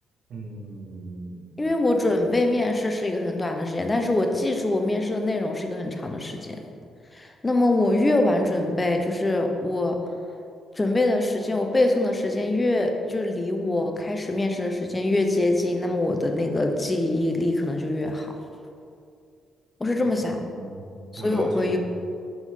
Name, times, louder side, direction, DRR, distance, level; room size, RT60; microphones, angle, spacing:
voice 1, 0.3-1.5 20.5-20.9 21.2-21.8, right 2 dB, 70° right, -3 dB, 1.5 m, -38 dB
voice 2, 1.6-6.6 7.1-10.0 10.8-18.3 19.8-20.4 21.1-21.8, left 2 dB, 20° left, 4 dB, 0.7 m, -24 dB
5.9 x 5.7 x 3.7 m, 2.4 s
cardioid pair, 90°, 0 cm